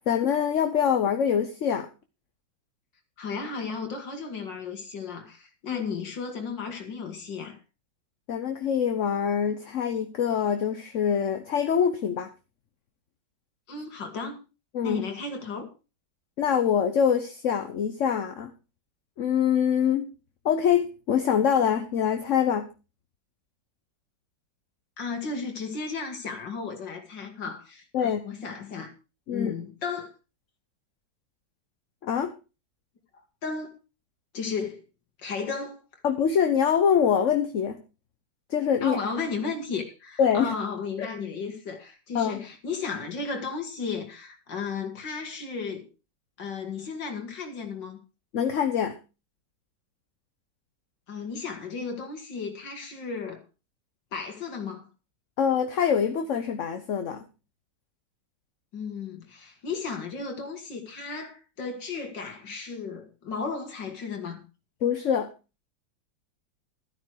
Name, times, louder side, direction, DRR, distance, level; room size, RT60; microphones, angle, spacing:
voice 1, 0.1-1.9 5.7-5.8 8.3-12.3 14.7-15.0 16.4-18.5 19.2-20.1 20.4-22.7 27.9-28.2 29.3-29.5 32.0-32.3 36.0-37.8 38.5-39.0 40.2-40.5 41.0-41.1 42.1-42.4 48.3-49.0 55.4-57.2 64.8-65.3, left 8 dB, 50° left, 1.1 m, -24 dB
voice 2, 3.2-7.6 13.7-14.4 14.8-15.7 25.0-28.9 29.3-30.1 33.4-33.7 34.3-34.8 35.2-35.8 38.8-45.9 46.4-48.0 51.1-53.4 54.1-54.9 58.7-64.4, left 5 dB, 75° left, 2.6 m, -34 dB
13.0 x 9.6 x 4.7 m
omnidirectional pair, 2.0 m